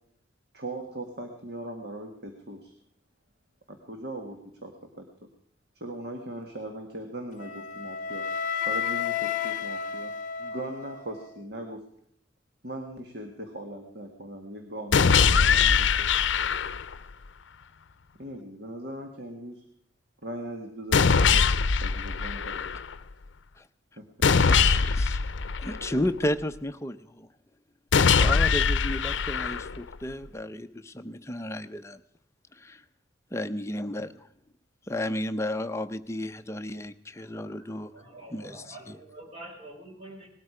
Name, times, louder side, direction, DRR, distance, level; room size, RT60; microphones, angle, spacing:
voice 1, 0.5-2.7 3.7-5.1 5.7-8.3 8.7-11.8 12.6-16.1 18.2-19.6 20.2-21.5 21.8-22.6 24.0-24.1, right 1 dB, 60° right, 4 dB, 1.6 m, -39 dB
Wind instrument woodwind instrument, 7.4-11.4, left 7 dB, 45° left, 0.9 m, -32 dB
sound 1, 14.9-16.9 20.9-22.9 24.2-26.2 27.9-29.9, left 5 dB, 80° left, 0.6 m, -22 dB
voice 2, 24.4-25.3 25.6-27.3 28.2-32.0 33.3-34.1 34.9-37.9 38.3-38.9, left 1 dB, 15° left, 9 dB, 0.6 m, -33 dB
voice 3, 37.3-40.3, right 1 dB, 35° right, -1 dB, 4.7 m, -46 dB
19.5 x 12.5 x 4.9 m, 0.72 s
head